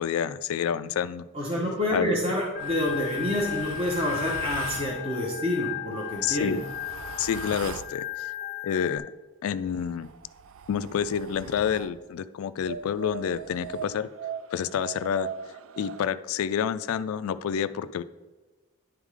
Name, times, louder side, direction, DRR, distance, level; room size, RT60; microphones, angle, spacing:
voice 1, 0.0-1.2 1.9-2.2 6.2-6.6 7.2-8.3 8.6-9.0 9.4-10.1 10.7-14.1 14.5-15.3 15.8-18.0, left 8 dB, 80° left, 14 dB, 0.3 m, -28 dB
voice 2, 1.3-6.6, left 1 dB, 25° right, -3 dB, 1.0 m, -28 dB
Organ, 2.6-9.0, left 14 dB, 30° left, 0.6 m, -35 dB
sound 1, 2.6-4.9 5.9-8.0 9.6-12.0 12.6-16.1, right 7 dB, 70° right, 0.3 m, -41 dB
10.0 x 3.7 x 4.8 m, 1.3 s
head